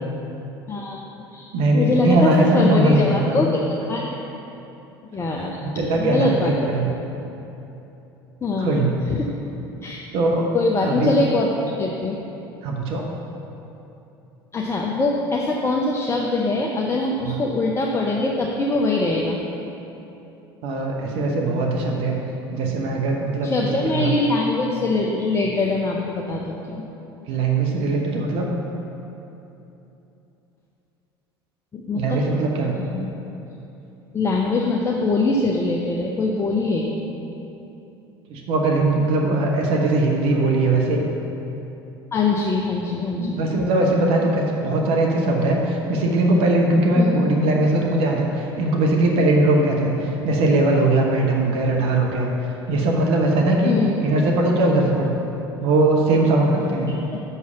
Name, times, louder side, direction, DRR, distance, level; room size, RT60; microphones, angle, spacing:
voice 1, 0.7-1.1 1.3-3.6 3.9-4.3 5.1-5.6 5.9-6.8 8.4-9.3 9.8-10.0 10.5-11.5 11.8-12.2 14.5-19.4 23.4-26.8 31.7-32.2 32.8-33.1 34.1-37.0 42.1-43.4 47.0-47.1 53.6-53.9 57.1-57.2, left 3 dB, 20° left, -1 dB, 0.7 m, -23 dB
voice 2, 1.5-3.3 5.4-6.9 8.6-8.9 10.1-10.5 10.8-11.2 12.6-13.1 17.2-17.4 20.6-22.2 22.5-23.5 23.8-24.2 27.3-28.5 31.9-32.8 38.3-41.0 43.2-52.3 52.7-53.8 54.0-55.2 55.6-57.0, right 2 dB, 50° right, 0 dB, 0.9 m, -20 dB
6.2 x 5.6 x 7.0 m, 3.0 s
figure-of-eight pair, 65°, 13 cm